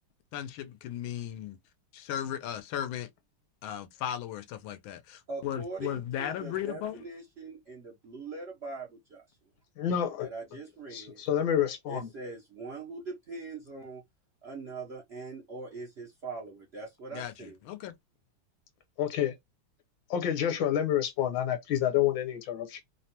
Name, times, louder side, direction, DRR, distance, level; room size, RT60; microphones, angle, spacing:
voice 1, 0.3-1.6 1.9-3.1 3.6-7.0 17.1-17.9, left 10 dB, 90° left, 1.5 m, -36 dB
voice 2, 5.3-9.3 10.2-11.2 11.9-14.0 14.4-17.6, right 3 dB, 80° right, 0.5 m, -42 dB
voice 3, 9.8-10.3 10.9-12.1 19.0-19.3 20.1-22.8, left 10 dB, 70° left, 1.5 m, -28 dB
3.5 x 2.1 x 2.8 m
omnidirectional pair, 2.2 m